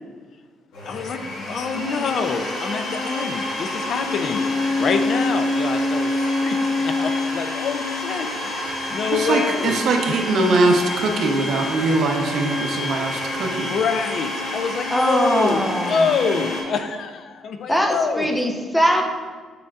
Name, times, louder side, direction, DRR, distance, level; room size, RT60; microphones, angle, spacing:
Domestic sounds home sounds, 0.7-16.6, left 2 dB, 85° left, 1.5 m, -27 dB
voice 1, 0.9-4.5 4.8-10.2 10.6-10.8 13.7-18.5, left 5 dB, 50° left, 8 dB, 0.4 m, -26 dB
voice 2, 9.3-13.7, right 2 dB, 60° right, 3 dB, 0.7 m, -21 dB
voice 3, 14.9-16.1 17.7-19.0, equal, 5° left, 2 dB, 0.6 m, -21 dB
6.8 x 6.1 x 2.4 m, 1.5 s
cardioid pair, 145°, 0 cm